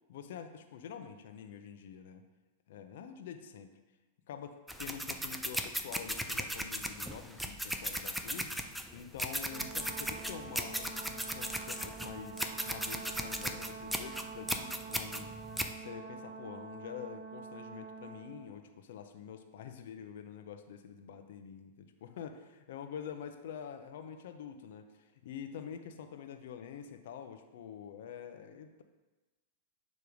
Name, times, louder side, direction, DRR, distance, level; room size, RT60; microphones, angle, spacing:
voice 1, 0.1-2.2 2.7-3.7 4.3-8.6 8.9-15.4 15.8-28.8, left 8 dB, 70° left, 7 dB, 0.6 m, -46 dB
sound 1, 4.7-15.7, equal, ahead, 0.5 m, -37 dB
Brass instrument, 9.5-18.4, right 5 dB, 55° right, 1.3 m, -46 dB
7.0 x 3.2 x 5.1 m, 1.2 s
hypercardioid pair, 115°, 0 cm